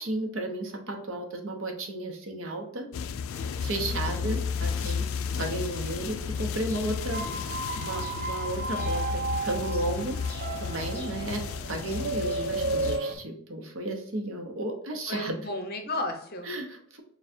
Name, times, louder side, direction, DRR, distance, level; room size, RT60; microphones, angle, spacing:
voice 1, 0.0-2.9 3.6-5.0 5.4-7.3 7.7-10.2 10.6-15.4 16.5-17.0, right 1 dB, 65° right, 3 dB, 0.9 m, -33 dB
sound 1, 2.9-13.0, left 6 dB, 65° left, 0.3 m, -33 dB
Rain, 3.3-13.2, left 1 dB, 10° left, 0.8 m, -49 dB
voice 2, 3.8-4.4 15.1-16.5, left 1 dB, 45° left, 4 dB, 0.7 m, -34 dB
sound 2, 7.0-13.2, right 3 dB, 40° right, 0.3 m, -33 dB
6.6 x 2.4 x 2.6 m, 0.73 s
head